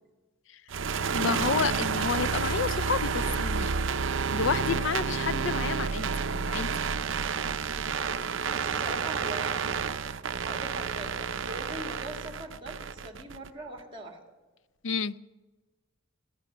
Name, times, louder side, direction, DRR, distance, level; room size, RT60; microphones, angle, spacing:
sound 1, 0.7-13.5, right 5 dB, 70° right, 0.6 m, -30 dB
voice 1, 1.1-3.7 4.3-6.7 14.8-15.2, left 6 dB, 70° left, 17 dB, 0.5 m, -30 dB
voice 2, 8.2-9.8 10.2-14.2, right 1 dB, 25° right, 3 dB, 2.4 m, -42 dB
19.0 x 13.5 x 5.5 m, 1.2 s
head